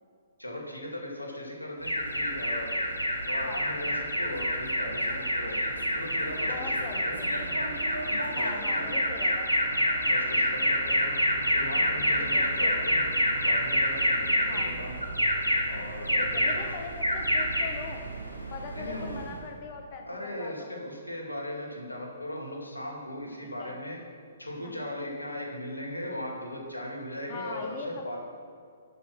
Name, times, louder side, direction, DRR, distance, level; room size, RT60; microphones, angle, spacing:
voice 1, 0.4-2.7 3.3-5.7 5.9-7.2 8.0-8.9 10.1-11.1 11.5-13.0 13.4-15.0 15.7-16.7 18.7-19.2 20.1-24.0 24.4-28.2, left 1 dB, 85° left, 0 dB, 2.3 m, -38 dB
Alarm, 1.8-19.5, equal, 90° right, 1.6 m, -28 dB
voice 2, 6.5-7.3 8.3-9.5 12.2-12.8 14.5-14.7 16.2-18.1 18.5-20.7 23.6-23.7 24.6-24.7 27.3-28.2, left 4 dB, 35° left, 3 dB, 0.9 m, -41 dB
12.0 x 5.9 x 6.2 m, 2.2 s
figure-of-eight pair, 120°, 0 cm